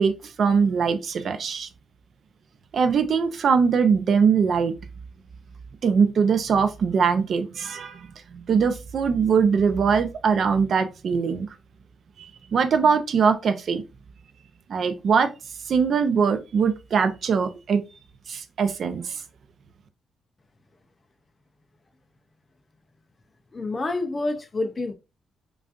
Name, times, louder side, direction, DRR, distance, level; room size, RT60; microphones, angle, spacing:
voice 1, 0.0-1.7 2.7-4.7 5.8-11.5 12.2-13.8 14.7-15.3 15.7-17.8 18.3-19.2, right 6 dB, 45° right, 0.5 m, -22 dB
voice 2, 23.5-24.9, left 2 dB, 25° left, 0.4 m, -28 dB
5.0 x 2.4 x 2.4 m
cardioid pair, 155°, 0 cm